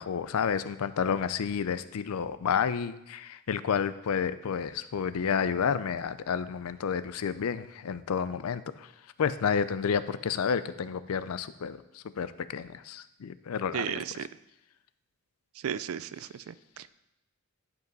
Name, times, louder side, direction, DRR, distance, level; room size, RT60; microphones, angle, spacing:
voice 1, 0.0-8.9 9.2-14.0, left 7 dB, 80° left, 14 dB, 0.4 m, -30 dB
voice 2, 13.7-14.3 15.6-16.9, right 8 dB, 70° right, 16 dB, 0.4 m, -35 dB
10.5 x 5.3 x 4.0 m, 0.87 s
head